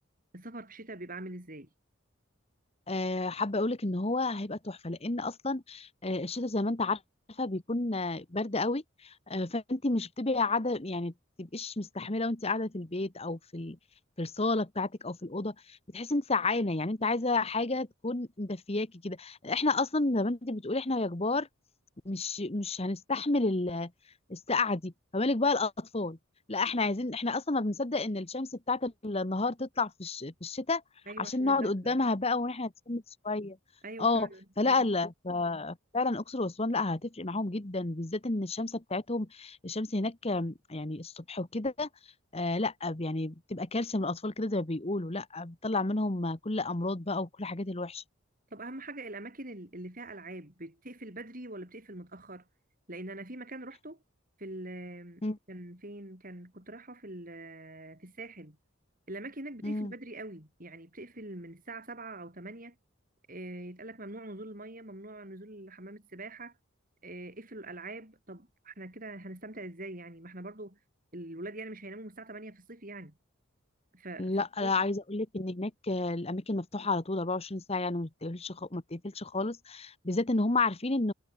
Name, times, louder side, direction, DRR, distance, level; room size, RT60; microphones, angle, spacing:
voice 1, 0.3-1.7 31.1-32.0 33.8-34.9 48.5-52.4 52.9-54.0 54.4-58.6 59.1-62.7 63.3-66.5 67.0-70.8 71.1-73.1 73.9-74.7, right 2 dB, 40° right, 6.3 m, -43 dB
voice 2, 2.9-7.0 7.4-11.1 11.4-13.8 14.2-15.5 15.9-21.5 22.0-23.9 24.3-26.2 26.5-30.8 31.2-33.6 34.0-34.3 34.6-41.9 42.3-48.0 55.2-55.4 59.6-59.9 74.2-81.1, left 2 dB, 30° left, 1.3 m, -31 dB
head